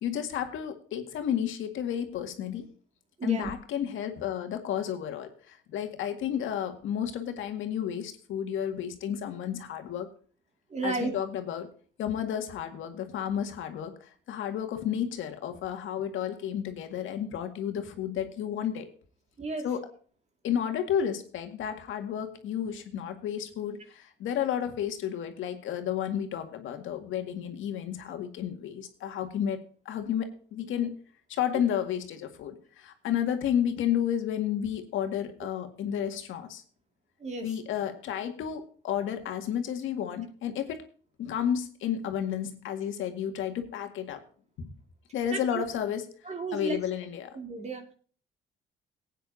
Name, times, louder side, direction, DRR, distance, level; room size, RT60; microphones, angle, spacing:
voice 1, 0.0-2.7 3.2-10.1 10.8-11.7 12.0-18.9 19.6-19.8 20.4-29.6 29.9-31.0 31.3-36.6 37.4-40.8 41.2-44.2 44.6-44.7 45.1-46.1 46.5-47.4, left 9 dB, 85° left, 6 dB, 2.0 m, -32 dB
voice 2, 3.2-3.5 10.7-11.1 19.4-19.7 37.2-37.5 45.3-45.6 46.3-46.8 47.3-47.9, right 3 dB, 35° right, 5 dB, 2.4 m, -33 dB
19.0 x 9.0 x 2.8 m, 0.43 s
cardioid pair, 90°, 20 cm